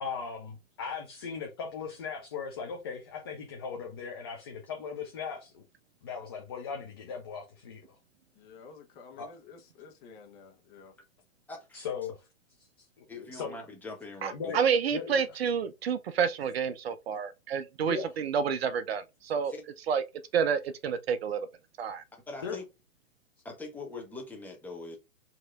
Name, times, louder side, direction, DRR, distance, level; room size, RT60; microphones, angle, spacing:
voice 1, 0.0-5.6 6.0-8.0 9.2-9.3 11.7-12.3 13.0-13.6 14.3-15.4 17.8-18.2 22.4-22.6, left 6 dB, 20° left, 0.3 m, -38 dB
voice 2, 8.3-10.9, left 5 dB, 35° left, 1.1 m, -51 dB
voice 3, 11.5-11.8 13.1-14.6 19.5-19.6 22.3-22.6 23.4-25.0, left 3 dB, 5° left, 0.8 m, -42 dB
voice 4, 14.2-19.5 19.9-20.0 20.3-21.5 21.8-22.0, right 7 dB, 50° right, 0.5 m, -29 dB
4.7 x 2.8 x 2.4 m
hypercardioid pair, 120°, 42 cm